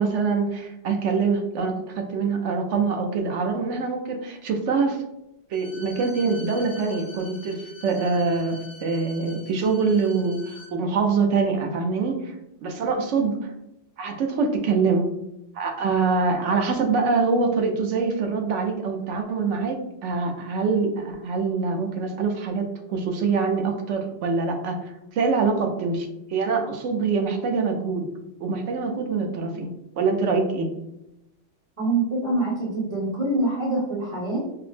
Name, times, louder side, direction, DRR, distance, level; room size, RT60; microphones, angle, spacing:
voice 1, 0.0-5.0 5.5-12.3 12.6-13.5 14.0-15.1 15.5-19.8 20.0-28.1 28.4-30.7, right 4 dB, 85° right, 3 dB, 1.0 m, -24 dB
Bowed string instrument, 5.5-10.7, left 2 dB, 30° left, 0.4 m, -45 dB
voice 2, 31.8-34.4, right 2 dB, 30° right, -6 dB, 1.1 m, -25 dB
4.7 x 2.0 x 3.2 m, 0.87 s
omnidirectional pair, 1.2 m